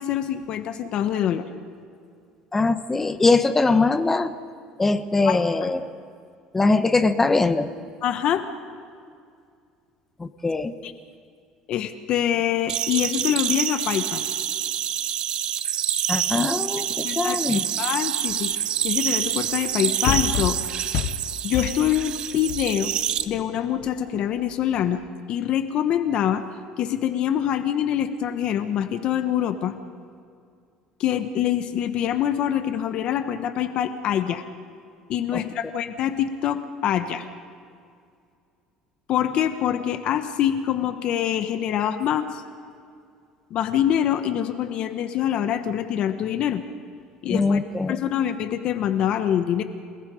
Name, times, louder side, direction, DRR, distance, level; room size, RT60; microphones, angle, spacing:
voice 1, 0.0-1.4 5.2-5.7 8.0-8.5 10.8-10.9 11.7-14.2 17.0-20.6 21.4-22.9 23.3-25.0 25.3-26.4 26.8-29.7 31.0-34.4 35.1-37.3 39.1-42.4 43.5-46.6 47.2-47.6 47.9-49.6, left 10 dB, 50° left, 9 dB, 1.2 m, -25 dB
voice 2, 2.5-4.3 4.8-5.9 6.5-7.7 10.2-10.7 16.1-17.6 35.3-35.4 47.3-48.0, left 3 dB, 15° left, 11 dB, 1.0 m, -22 dB
sound 1, 12.7-23.3, right 10 dB, 45° right, 0.8 m, -27 dB
sound 2, 18.3-18.4 20.0-23.4 23.9-24.0, left 11 dB, 65° left, 0.8 m, -29 dB
29.0 x 19.0 x 5.0 m, 2.3 s
cardioid pair, 135°, 2 cm